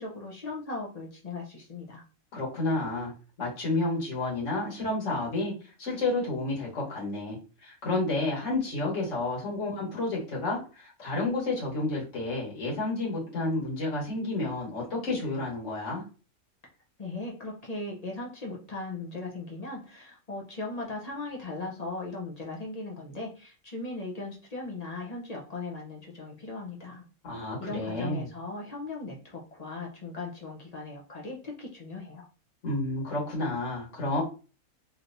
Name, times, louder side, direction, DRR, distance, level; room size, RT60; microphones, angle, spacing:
voice 1, 0.0-2.0 17.0-27.0 27.6-32.2, left 3 dB, 35° left, -2 dB, 0.6 m, -38 dB
voice 2, 2.3-3.1 3.4-5.5 5.8-7.4 7.6-16.0 27.2-28.3 32.6-34.2, left 2 dB, 55° left, -4 dB, 1.6 m, -30 dB
3.3 x 2.8 x 2.5 m, 0.35 s
omnidirectional pair, 1.5 m